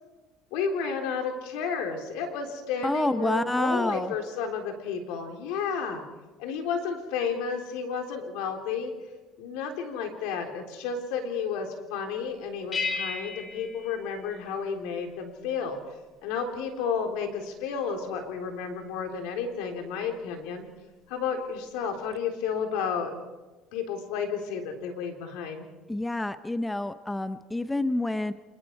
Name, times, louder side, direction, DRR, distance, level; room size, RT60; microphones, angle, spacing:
voice 1, 0.5-6.0 6.4-8.9 9.4-15.8 16.2-20.7 21.1-23.1 23.7-25.7, left 6 dB, 85° left, 4 dB, 3.7 m, -32 dB
voice 2, 2.8-4.1 25.9-28.3, left 1 dB, 10° left, 11 dB, 0.8 m, -28 dB
sound 1, 12.7-14.9, left 4 dB, 30° left, 4.1 m, -34 dB
27.5 x 20.5 x 4.7 m, 1.2 s
cardioid pair, 120°, 0 cm